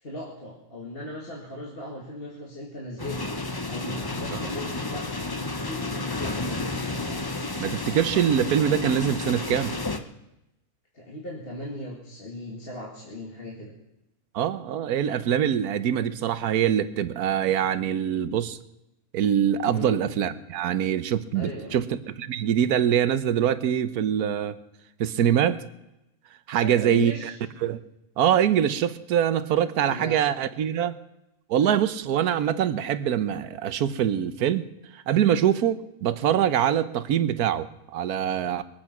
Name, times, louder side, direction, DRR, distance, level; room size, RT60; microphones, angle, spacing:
voice 1, 0.0-3.2 3.4-5.1 5.4-6.8 10.9-13.7 19.7-20.0 21.3-21.8 26.5-27.3 29.8-30.2, left 1 dB, 40° left, -3 dB, 2.4 m, -37 dB
sound 1, 3.0-10.0, left 2 dB, 20° left, 0.6 m, -31 dB
voice 2, 7.6-9.7 14.3-18.6 19.1-21.9 22.2-24.5 25.0-25.6 26.5-27.3 27.6-27.8 28.2-30.9 31.5-34.7 34.9-38.6, right 9 dB, 85° right, 13 dB, 1.3 m, -24 dB
22.5 x 8.8 x 6.0 m, 0.88 s
omnidirectional pair, 1.6 m